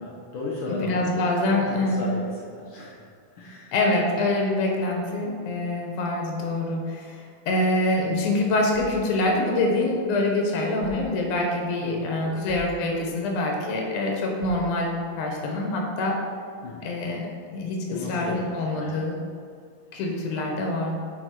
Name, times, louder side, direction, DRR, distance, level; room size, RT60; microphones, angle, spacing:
voice 1, 0.0-3.7 11.8-12.4 16.6-16.9 17.9-19.0, left 2 dB, 70° left, -4 dB, 1.2 m, -35 dB
voice 2, 0.7-2.1 3.7-16.2 16.8-19.2 19.9-20.9, left 2 dB, 90° left, 0 dB, 2.6 m, -25 dB
sound 1, 8.7-10.1 10.8-11.7 12.5-13.4 14.4-15.2, left 5 dB, 25° right, 0.8 m, -45 dB
6.5 x 5.1 x 4.6 m, 2.1 s
omnidirectional pair, 3.5 m